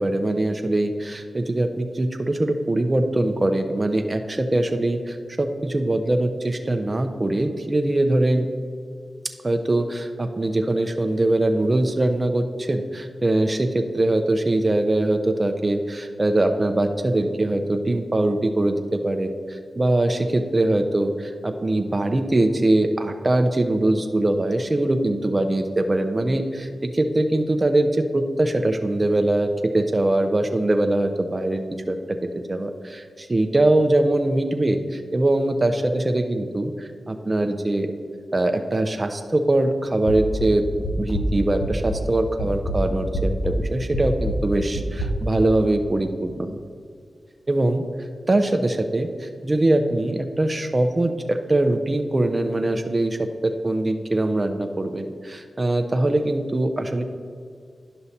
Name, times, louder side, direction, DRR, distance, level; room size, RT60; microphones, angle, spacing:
voice 1, 0.0-8.5 9.4-32.0 32.5-37.9 38.3-40.6 41.0-46.6 47.5-47.8 48.3-57.0, right 1 dB, 35° right, 5 dB, 0.7 m, -22 dB
sound 1, 40.1-42.1 42.4-45.1, equal, 80° left, 1.2 m, -26 dB
11.0 x 5.6 x 4.2 m, 2.2 s
cardioid pair, 45°, 0 cm